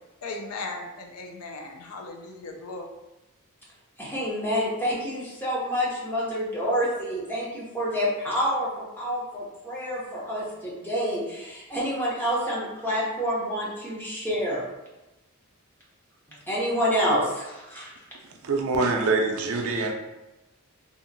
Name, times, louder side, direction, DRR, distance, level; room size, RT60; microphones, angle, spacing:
voice 1, 0.2-2.9, left 3 dB, 85° left, 2 dB, 0.5 m, -37 dB
voice 2, 4.0-14.6 16.5-17.9, equal, 10° left, -6 dB, 0.7 m, -28 dB
voice 3, 18.4-19.9, right 3 dB, 75° right, 3 dB, 0.4 m, -24 dB
2.8 x 2.5 x 2.6 m, 1.0 s
head